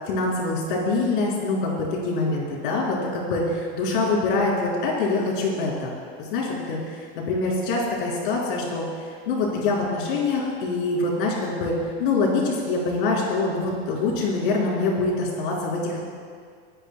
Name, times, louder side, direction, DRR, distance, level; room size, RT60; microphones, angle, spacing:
voice 1, 0.1-8.8 9.3-11.7 12.0-16.1, left 3 dB, 65° left, -3 dB, 3.5 m, -25 dB
26.0 x 9.8 x 2.2 m, 2.1 s
supercardioid pair, 165°, 29 cm